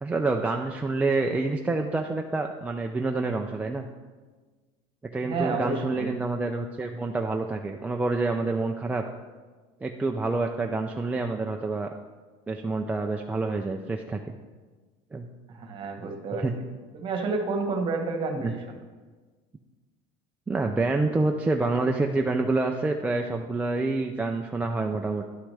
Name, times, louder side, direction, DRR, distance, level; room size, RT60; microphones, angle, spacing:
voice 1, 0.0-3.9 5.1-9.0 9.8-11.9 12.5-14.2 15.1-15.3 16.4-16.5 18.4-18.5 20.5-25.2, right 3 dB, 10° right, 2 dB, 0.3 m, -27 dB
voice 2, 5.2-6.1 15.5-16.6 16.9-18.8, right 3 dB, 35° right, 4 dB, 1.2 m, -30 dB
11.5 x 6.0 x 3.3 m, 1.4 s
cardioid pair, 150°, 16 cm